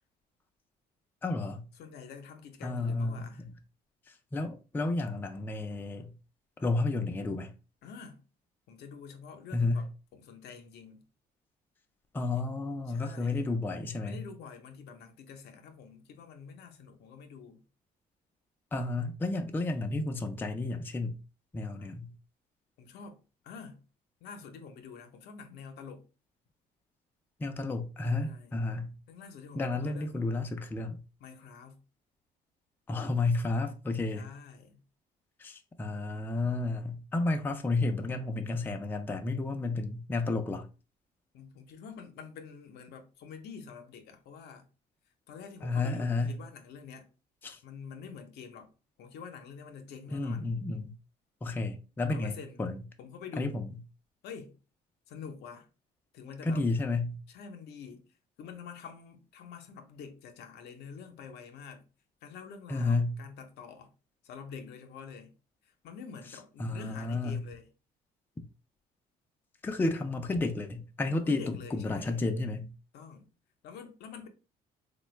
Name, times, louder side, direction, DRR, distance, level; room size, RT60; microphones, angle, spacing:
voice 1, 1.2-1.6 2.6-3.5 4.3-6.1 6.6-7.5 9.5-9.9 12.1-14.2 18.7-21.2 21.5-22.1 27.4-28.9 29.6-31.0 32.9-34.3 35.4-40.7 45.6-46.3 47.4-47.6 50.1-50.9 51.4-52.3 52.6-52.8 53.4-53.7 56.4-57.2 62.7-63.2 66.6-67.4 69.6-72.7, left 3 dB, 10° left, 0.3 m, -31 dB
voice 2, 1.7-3.4 7.8-8.2 8.7-11.1 12.3-12.5 12.9-13.5 14.0-17.6 21.8-22.0 22.8-23.8 24.2-26.1 28.2-28.6 29.1-30.3 31.2-31.8 34.1-34.8 41.3-44.7 45.3-47.1 47.6-50.5 52.1-52.6 53.0-53.6 54.2-54.6 55.1-55.7 56.1-56.7 57.3-58.1 58.4-61.9 62.2-63.9 64.2-65.4 65.6-67.7 71.1-72.2 72.9-73.3 73.6-74.3, left 6 dB, 75° left, 0.6 m, -47 dB
3.3 x 2.1 x 3.1 m
cardioid pair, 110°, 17 cm